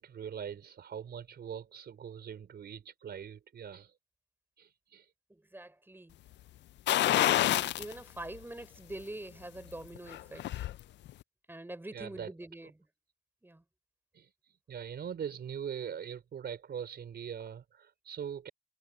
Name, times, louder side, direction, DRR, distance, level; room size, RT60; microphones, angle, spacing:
voice 1, 0.0-3.9 4.6-5.1 7.0-7.2 11.9-12.3 14.1-18.5, right 8 dB, 55° right, 4.7 m, -42 dB
voice 2, 5.3-6.2 7.0-10.6 11.5-12.9 13.4-13.6, right 1 dB, 10° right, 4.5 m, -45 dB
sound 1, 6.9-7.9 8.3-8.4 9.9-10.7 11.1-11.2, left 14 dB, 65° left, 0.4 m, -27 dB
cardioid pair, 90°, 20 cm